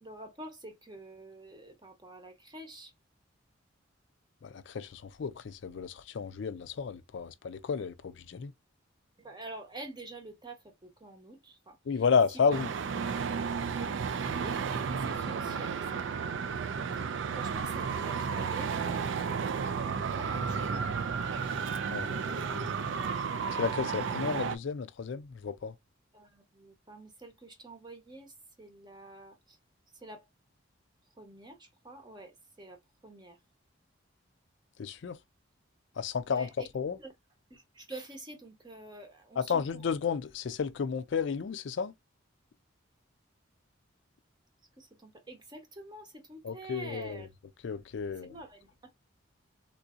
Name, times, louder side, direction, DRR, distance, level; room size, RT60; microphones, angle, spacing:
voice 1, 0.0-2.9 9.2-12.0 12.3-12.6 13.6-16.0 17.0-19.1 19.8-21.0 21.9-22.9 26.1-29.6 29.9-30.3 31.2-33.4 36.3-36.7 37.0-37.1 37.5-39.9 44.8-47.3 48.1-48.9, right 2 dB, 20° right, 0.8 m, -48 dB
voice 2, 4.4-8.5 11.9-12.7 21.9-22.7 23.5-25.7 34.8-35.2 36.0-36.5 36.7-37.0 39.4-41.9 46.4-47.2 47.6-48.3, left 6 dB, 60° left, 0.4 m, -32 dB
Traffic noise roadway noise, 12.5-24.6, right 6 dB, 65° right, 0.4 m, -33 dB
3.7 x 2.6 x 2.4 m
head